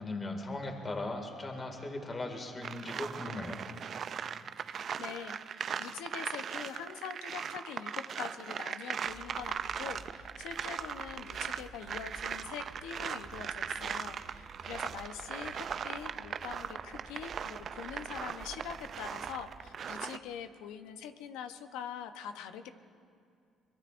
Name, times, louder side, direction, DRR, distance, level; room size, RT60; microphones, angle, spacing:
voice 1, 0.0-3.6, left 2 dB, 30° left, 3 dB, 2.2 m, -38 dB
sound 1, 2.6-20.2, right 7 dB, 55° right, 0.4 m, -39 dB
voice 2, 4.6-22.7, left 8 dB, 90° left, 8 dB, 0.8 m, -44 dB
sound 2, 9.0-19.7, right 3 dB, 30° right, 3.0 m, -53 dB
24.5 x 22.5 x 2.6 m, 2.3 s
supercardioid pair, 75°, 0 cm